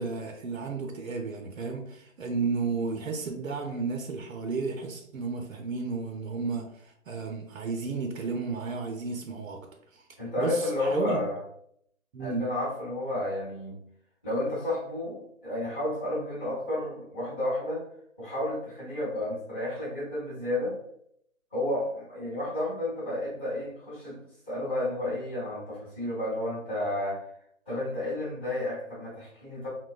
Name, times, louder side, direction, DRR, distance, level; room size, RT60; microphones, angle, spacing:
voice 1, 0.0-9.6 9.9-10.1 10.4-11.2 12.1-12.5, right 4 dB, 80° right, 3 dB, 0.6 m, -33 dB
voice 2, 10.2-11.4 12.2-13.8 14.2-17.8 18.2-20.8 21.5-24.2 24.5-27.2 27.7-29.7, left 1 dB, 10° left, -13 dB, 0.6 m, -31 dB
3.8 x 2.1 x 2.3 m, 0.70 s
hypercardioid pair, 155°, 40 cm